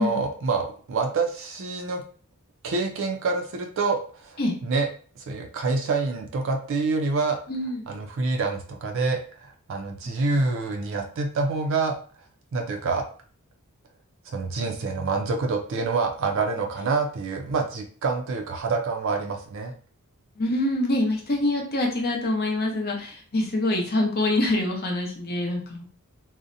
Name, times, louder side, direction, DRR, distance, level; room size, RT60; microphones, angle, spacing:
voice 1, 0.0-2.0 2.6-4.9 5.2-7.4 7.9-12.0 12.5-13.0 14.3-19.7, right 3 dB, 60° right, 3 dB, 0.4 m, -27 dB
voice 2, 7.5-7.9 20.4-25.8, left 1 dB, 45° left, 0 dB, 0.6 m, -25 dB
2.6 x 2.0 x 2.5 m, 0.43 s
head